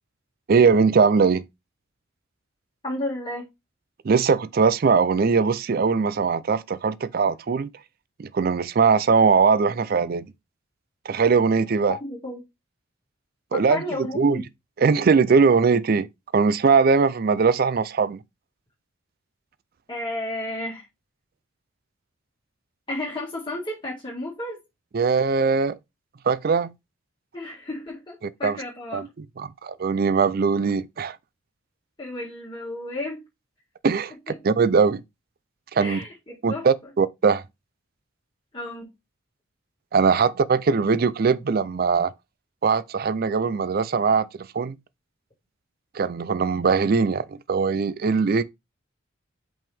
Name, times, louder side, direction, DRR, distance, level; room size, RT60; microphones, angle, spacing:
voice 1, 0.5-1.4 4.0-7.7 8.2-10.3 11.1-12.0 13.5-13.8 14.2-14.4 14.8-16.1 16.3-18.2 24.9-25.7 26.3-26.7 28.2-28.6 28.9-29.1 29.4-31.2 33.8-35.0 35.7-36.0 36.4-37.4 39.9-42.1 42.6-44.3 44.5-44.8 45.9-48.4, right 5 dB, 45° right, 0.4 m, -20 dB
voice 2, 2.8-3.5 11.9-12.4 13.5-14.4 19.9-20.9 22.9-24.6 27.3-29.1 32.0-33.2 35.8-36.7 38.5-38.9, left 1 dB, 20° left, 1.9 m, -32 dB
5.5 x 5.4 x 3.4 m
head